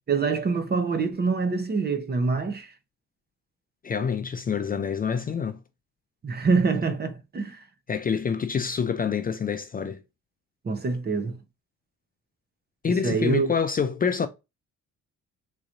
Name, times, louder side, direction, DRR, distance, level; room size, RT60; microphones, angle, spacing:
voice 1, 0.1-2.7 6.2-7.6 10.6-11.4 12.9-13.5, right 4 dB, 35° right, 0.8 m, -25 dB
voice 2, 3.8-5.6 7.9-10.0 12.8-14.3, left 6 dB, 30° left, 0.4 m, -27 dB
3.8 x 3.1 x 2.5 m
cardioid pair, 90°, 30 cm